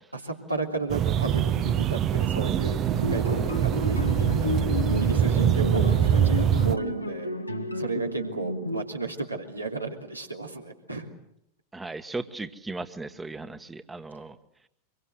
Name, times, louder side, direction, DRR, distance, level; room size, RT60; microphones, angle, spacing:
voice 1, 0.1-2.8 3.1-4.0 4.4-11.1, right 3 dB, 85° right, 1 dB, 3.2 m, -33 dB
sound 1, 0.9-6.7, right 9 dB, 30° right, 0.9 m, -24 dB
sound 2, 2.9-8.9, left 2 dB, 85° left, 1.8 m, -31 dB
voice 2, 11.7-14.4, right 3 dB, 10° right, 11 dB, 1.4 m, -36 dB
25.0 x 22.5 x 8.0 m, 0.79 s
figure-of-eight pair, 90°, 0 cm